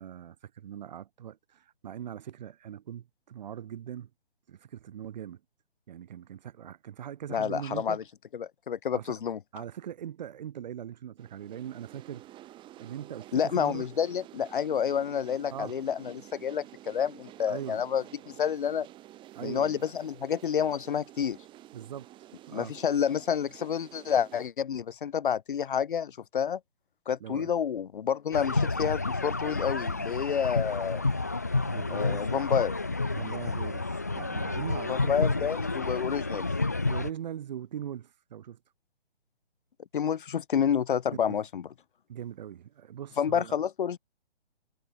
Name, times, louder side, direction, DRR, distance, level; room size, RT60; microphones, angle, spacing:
voice 1, 0.0-4.1 4.5-5.4 5.9-8.0 8.9-9.2 9.5-12.2 12.8-13.9 15.5-15.8 17.5-17.8 19.3-19.8 21.7-22.1 22.5-22.8 27.2-27.5 31.6-32.3 33.1-35.5 36.9-38.6 41.1-41.4 42.1-43.6, right 10 dB, 40° right, 2.8 m, -41 dB
voice 2, 7.3-8.0 8.3-9.4 13.3-18.9 19.4-21.4 22.5-26.6 27.1-31.0 31.9-32.7 34.9-36.5 39.9-41.6 43.2-44.0, left 8 dB, 50° left, 1.5 m, -29 dB
sound 1, 11.2-24.5, right 14 dB, 15° right, 4.1 m, -50 dB
sound 2, 28.3-37.1, left 3 dB, 15° left, 0.4 m, -30 dB
figure-of-eight pair, 150°, 34 cm